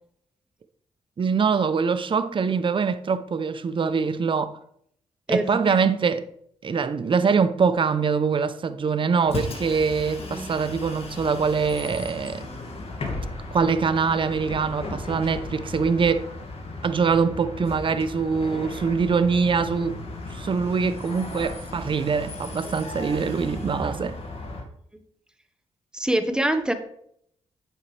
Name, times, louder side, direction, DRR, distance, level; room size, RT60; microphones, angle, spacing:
voice 1, 1.2-4.5 5.3-6.2 6.6-12.5 13.5-16.2 16.8-20.0 20.3-24.2, right 5 dB, 45° right, 0.8 m, -23 dB
voice 2, 5.3-5.9 10.2-10.5 25.9-26.7, right 1 dB, 5° right, 1.4 m, -25 dB
Bus, 9.2-24.6, left 2 dB, 55° left, 2.2 m, -36 dB
9.3 x 7.4 x 3.4 m
cardioid pair, 65°, 12 cm